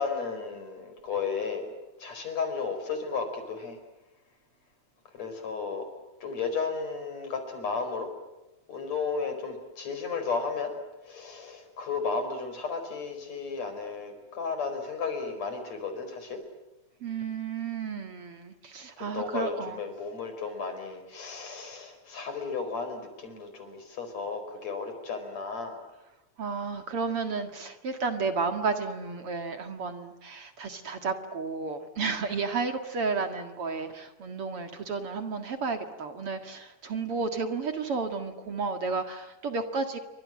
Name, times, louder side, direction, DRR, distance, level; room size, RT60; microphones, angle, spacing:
voice 1, 0.0-1.7 2.0-3.8 5.1-5.9 6.2-8.1 8.7-10.7 11.1-16.4 19.1-25.8, left 5 dB, 60° left, 8 dB, 5.9 m, -33 dB
voice 2, 17.0-19.8 26.4-40.0, right 4 dB, 50° right, 7 dB, 2.7 m, -32 dB
29.0 x 25.0 x 7.7 m, 1.1 s
omnidirectional pair, 3.4 m